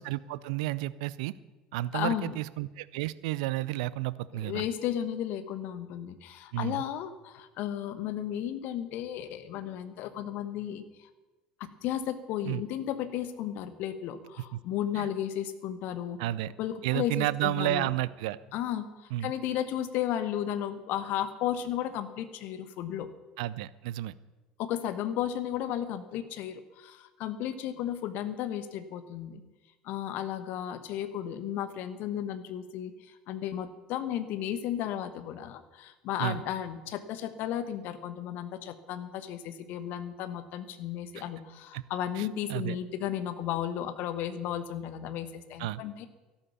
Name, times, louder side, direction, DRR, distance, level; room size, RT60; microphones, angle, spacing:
voice 1, 0.0-1.3 1.7-4.7 6.5-6.8 12.5-12.6 14.5-14.6 14.9-15.1 16.2-16.5 16.8-18.4 19.1-19.3 23.4-24.1 36.2-36.4 41.7-41.8 42.2-42.8 45.6-45.8, right 16 dB, 60° right, 18 dB, 0.5 m, -31 dB
voice 2, 1.9-2.4 4.3-11.1 11.6-16.2 16.6-17.9 18.5-23.1 24.6-29.4 29.8-46.1, left 10 dB, 50° left, 11 dB, 1.2 m, -34 dB
13.5 x 12.0 x 7.0 m, 1.1 s
figure-of-eight pair, 65°, 4 cm